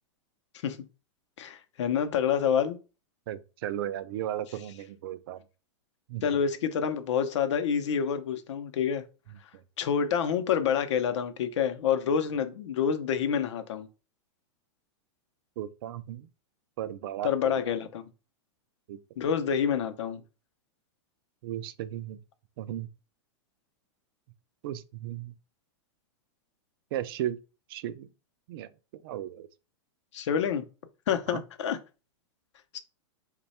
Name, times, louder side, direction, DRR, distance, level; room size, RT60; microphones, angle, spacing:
voice 1, 1.4-2.8 6.2-9.0 9.8-13.9 17.2-18.1 19.2-20.2 30.1-30.7 31.1-31.8 32.7-32.8, left 7 dB, 75° left, 0.6 m, -27 dB
voice 2, 3.3-5.4 6.1-6.2 15.6-16.3 16.8-17.7 18.9-19.0 21.4-22.2 22.6-22.9 24.6-25.3 26.9-27.4 27.7-28.1 28.5-28.7 29.0-29.5 31.3-31.4, right 12 dB, 50° right, 0.4 m, -35 dB
3.0 x 2.3 x 4.1 m
supercardioid pair, 150°, 15 cm